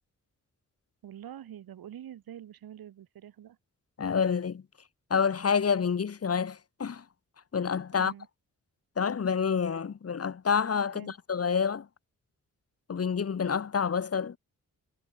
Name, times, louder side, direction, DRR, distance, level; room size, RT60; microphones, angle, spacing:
voice 1, 1.0-3.6 7.9-8.3 10.9-11.1, right 10 dB, 90° right, 4.9 m, -46 dB
voice 2, 4.0-4.6 5.1-7.0 7.5-8.1 9.0-11.9 12.9-14.4, left 6 dB, 45° left, 0.9 m, -28 dB
supercardioid pair, 45°, 35 cm